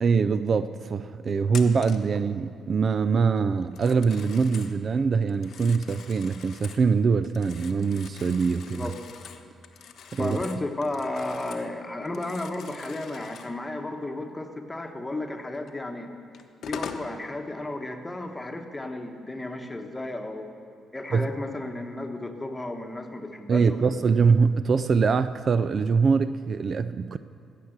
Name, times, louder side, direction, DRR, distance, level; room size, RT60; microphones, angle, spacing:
voice 1, 0.0-8.9 10.1-10.4 21.1-21.3 23.5-27.2, right 5 dB, 45° right, 0.4 m, -23 dB
Telephone, 1.5-2.1 3.6-4.8 5.3-6.9 7.2-11.7 12.0-13.6 15.7-15.8 16.3-17.1, left 7 dB, 65° left, 0.8 m, -43 dB
voice 2, 8.5-9.0 10.2-16.1 16.6-20.5 20.9-24.0, left 2 dB, 15° left, 1.2 m, -33 dB
15.0 x 6.7 x 7.9 m
cardioid pair, 90°, 0 cm